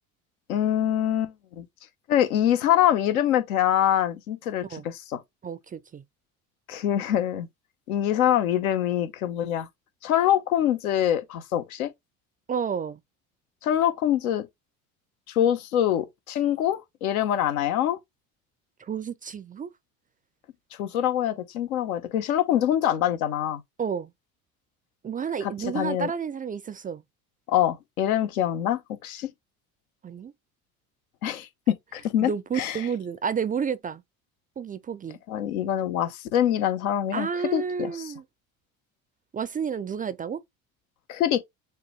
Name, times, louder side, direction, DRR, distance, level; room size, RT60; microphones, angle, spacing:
voice 1, 0.5-1.7 2.1-5.2 6.7-7.5 7.9-9.7 10.0-11.9 13.6-14.5 15.3-18.0 20.7-23.6 25.4-26.1 27.5-29.3 31.2-32.8 35.3-38.1 41.1-41.4, left 11 dB, 85° left, 0.9 m, -25 dB
voice 2, 5.4-6.0 12.5-13.0 18.8-19.7 23.8-24.1 25.0-27.0 30.0-30.3 32.2-34.0 34.6-35.2 37.1-38.2 39.3-40.4, right 7 dB, 20° right, 0.3 m, -30 dB
6.7 x 2.3 x 3.0 m
hypercardioid pair, 70°, 42 cm